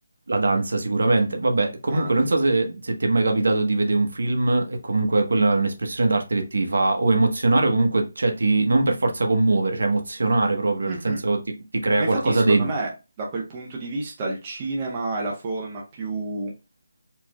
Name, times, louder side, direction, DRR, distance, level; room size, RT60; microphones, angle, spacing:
voice 1, 0.3-11.4 11.7-12.7, right 2 dB, 70° right, 1.0 m, -21 dB
voice 2, 10.8-11.2 12.0-12.9 13.2-16.5, right 2 dB, 20° right, 0.7 m, -30 dB
4.4 x 3.0 x 2.3 m
figure-of-eight pair, 170°, 0 cm